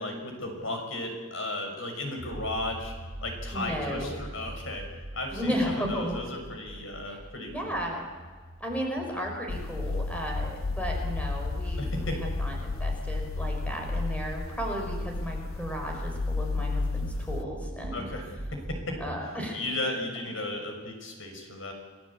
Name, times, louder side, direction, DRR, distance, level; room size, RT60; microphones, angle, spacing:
voice 1, 0.0-2.9 3.2-4.8 5.1-7.8 11.8-12.2 17.9-18.2 18.7-19.0 19.5-21.7, left 1 dB, 70° left, 3 dB, 6.3 m, -35 dB
sound 1, 2.2-19.2, right 1 dB, 80° right, 2.4 m, -42 dB
voice 2, 3.5-4.2 5.3-6.2 7.1-7.2 7.4-8.0 8.6-18.1 19.0-19.6, equal, 5° left, 1 dB, 5.3 m, -34 dB
sound 2, 9.5-17.4, left 3 dB, 90° left, 0.9 m, -32 dB
29.5 x 19.0 x 8.7 m, 1.5 s
head